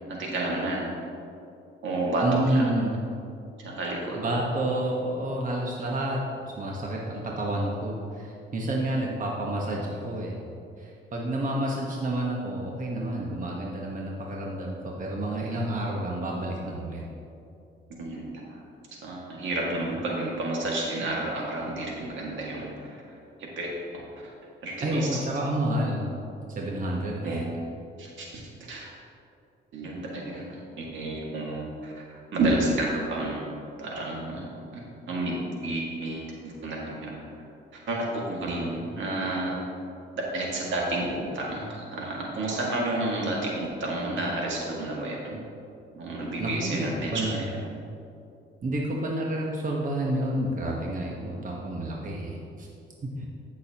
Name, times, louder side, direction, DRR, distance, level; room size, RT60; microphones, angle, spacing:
voice 1, 0.1-0.9 1.8-2.6 3.6-4.2 17.9-18.6 19.0-23.0 23.6-24.3 24.6-25.2 27.2-27.5 28.0-28.4 28.7-28.9 29.7-30.5 30.8-33.5 33.8-35.4 35.6-37.2 37.7-39.6 40.3-45.4 46.0-47.6, right 2 dB, 75° right, -3 dB, 2.2 m, -31 dB
voice 2, 2.2-3.0 4.2-10.4 10.8-17.0 24.8-26.1 26.6-27.4 46.4-47.4 48.6-52.7 53.0-53.3, right 1 dB, 40° right, -2 dB, 1.2 m, -29 dB
15.0 x 6.3 x 3.0 m, 2.7 s
cardioid pair, 90°, 20 cm